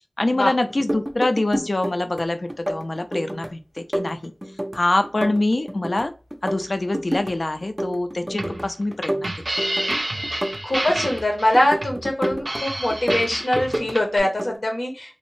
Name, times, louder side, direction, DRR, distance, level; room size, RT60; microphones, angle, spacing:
voice 1, 0.2-4.3 4.7-6.1 6.4-9.3, left 2 dB, 55° left, 8 dB, 0.3 m, -24 dB
sound 1, 0.7-2.2 2.5-3.5 3.8-6.1 6.3-7.3 7.6-8.7 8.9-11.2 11.5-12.6 12.9-14.0 14.2-14.6, right 1 dB, 20° right, 0.4 m, -29 dB
sound 2, 8.3-14.2, right 1 dB, 70° right, 0.5 m, -29 dB
voice 2, 10.6-15.1, left 1 dB, 75° left, 1 dB, 0.7 m, -23 dB
2.6 x 2.0 x 3.1 m, 0.33 s
wide cardioid pair, 60°, 0 cm